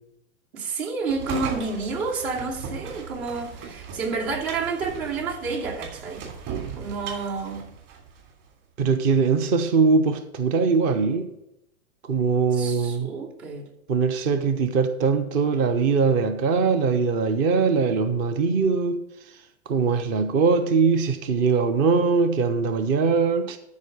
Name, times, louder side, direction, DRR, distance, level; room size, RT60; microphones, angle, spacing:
voice 1, 0.5-6.3 6.8-7.7 12.5-13.7, right 4 dB, 70° right, 2.9 m, -30 dB
sound 1, 1.1-8.3, right 6 dB, 45° right, 3.1 m, -37 dB
voice 2, 8.8-11.3 12.0-13.1 13.9-19.0 19.7-23.6, right 5 dB, 20° right, 0.4 m, -21 dB
13.0 x 4.7 x 6.2 m
hypercardioid pair, 125°, 44 cm